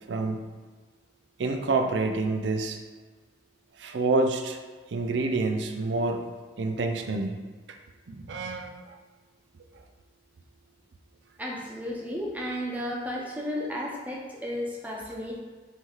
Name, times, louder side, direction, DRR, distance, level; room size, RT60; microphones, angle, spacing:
voice 1, 0.1-0.4 1.4-2.8 3.8-4.6 4.9-6.2 6.6-7.4 7.7-7.8 8.1-9.0, right 3 dB, 80° right, 5 dB, 0.5 m, -27 dB
voice 2, 11.4-15.4, equal, 10° right, -3 dB, 1.0 m, -33 dB
8.2 x 3.0 x 3.7 m, 1.4 s
head